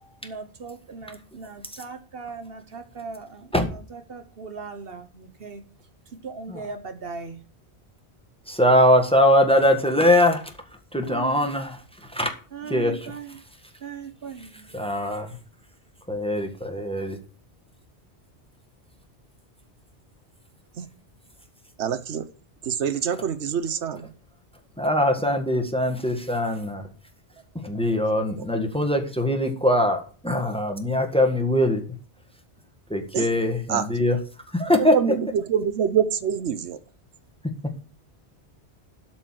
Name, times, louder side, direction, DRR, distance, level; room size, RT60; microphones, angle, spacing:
voice 1, 0.2-5.6 6.2-7.4 11.0-11.4 12.5-13.4 13.8-14.8, right 5 dB, 60° right, 1.3 m, -38 dB
voice 2, 8.5-10.4 10.9-11.8 12.1-12.3 12.6-13.1 14.7-15.3 16.1-17.2 24.8-26.8 27.6-31.8 32.9-34.2 34.5-34.9, left 1 dB, 5° left, 1.6 m, -22 dB
voice 3, 21.8-22.3 22.6-24.1 33.1-33.3 33.7-33.9 34.7-36.8, right 8 dB, 85° right, 1.1 m, -25 dB
12.5 x 4.5 x 7.4 m
omnidirectional pair, 1.1 m